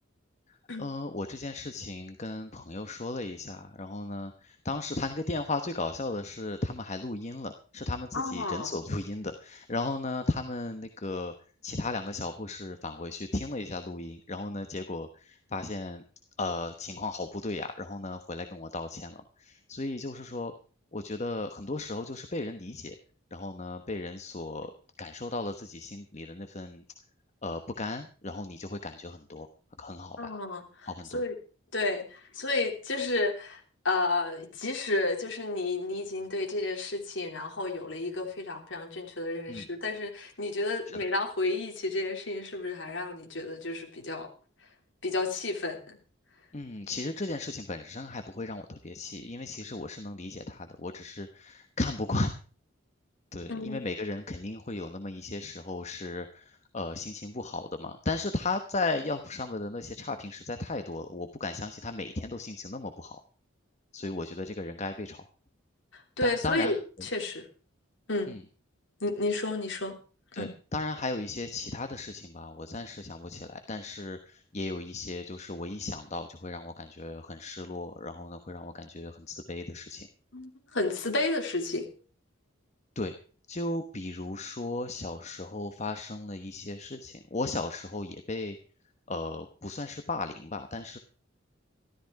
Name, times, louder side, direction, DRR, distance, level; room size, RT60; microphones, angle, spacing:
voice 1, 0.5-11.3 11.6-16.0 16.4-20.5 20.9-22.9 23.3-24.7 25.0-26.8 27.4-29.5 29.8-30.3 30.9-31.2 39.5-39.7 40.9-41.0 46.5-52.3 53.3-63.2 63.9-65.3 66.2-66.7 68.3-68.4 70.3-80.1 82.9-83.1 83.5-88.6 89.1-91.0, left 2 dB, 35° left, 8 dB, 1.1 m, -36 dB
voice 2, 8.1-8.7 30.2-31.3 31.7-33.6 33.8-44.3 45.0-46.0 53.5-53.8 65.9-67.4 68.1-68.4 69.0-70.0 70.4-70.5 80.3-81.9, left 2 dB, 65° left, 2 dB, 3.4 m, -31 dB
13.5 x 13.0 x 4.8 m, 0.38 s
head